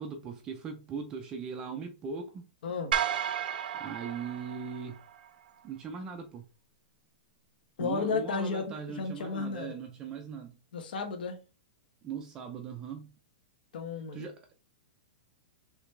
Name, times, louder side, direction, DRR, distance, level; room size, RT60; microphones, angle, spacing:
voice 1, 0.0-2.5 3.7-5.0 5.6-6.5 7.8-10.5 12.0-13.1 14.1-14.5, right 6 dB, 15° right, 0.4 m, -39 dB
voice 2, 2.6-2.9 7.8-9.7 10.7-11.4 13.7-14.3, left 4 dB, 65° left, 1.1 m, -33 dB
sound 1, 2.9-5.3, right 9 dB, 70° right, 0.6 m, -33 dB
5.1 x 3.2 x 3.1 m
supercardioid pair, 180°, 5 cm